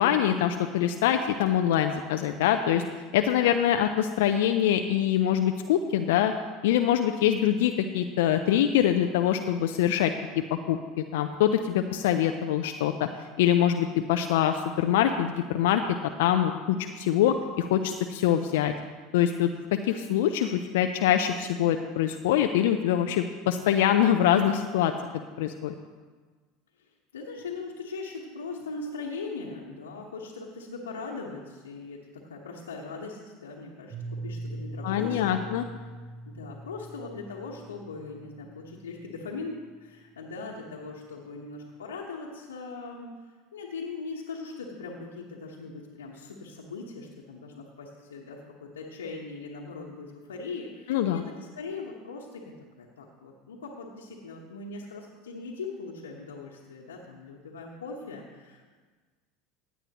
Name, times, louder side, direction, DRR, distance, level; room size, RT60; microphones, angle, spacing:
voice 1, 0.0-2.8 3.1-6.3 6.6-10.1 10.7-10.8 11.1-13.1 13.4-15.8 16.2-18.7 19.1-24.9 25.4-25.7 34.8-35.6 50.9-51.2, left 10 dB, 70° left, 6 dB, 0.5 m, -24 dB
voice 2, 27.1-35.4 36.2-58.7, left 4 dB, 90° left, -4 dB, 1.2 m, -40 dB
Piano, 33.9-39.5, right 2 dB, 60° right, 3.5 m, -41 dB
16.5 x 9.2 x 3.0 m, 1.4 s
hypercardioid pair, 80°, 0 cm